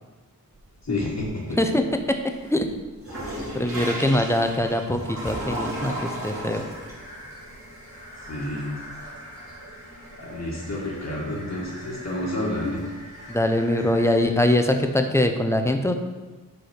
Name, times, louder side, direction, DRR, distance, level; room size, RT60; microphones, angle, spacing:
sound 1, 0.5-1.5 1.9-14.2, right 1 dB, 40° right, 2.1 m, -37 dB
voice 1, 0.8-1.8 8.2-8.8 10.2-12.9, left 1 dB, 50° left, -4 dB, 1.5 m, -30 dB
voice 2, 2.1-2.7 3.5-6.6 13.3-15.9, left 1 dB, 10° left, 5 dB, 0.6 m, -23 dB
Breathing, 6.3-14.9, equal, 25° left, 1.6 m, -47 dB
5.4 x 4.1 x 5.9 m, 1.2 s
wide cardioid pair, 80°, 35 cm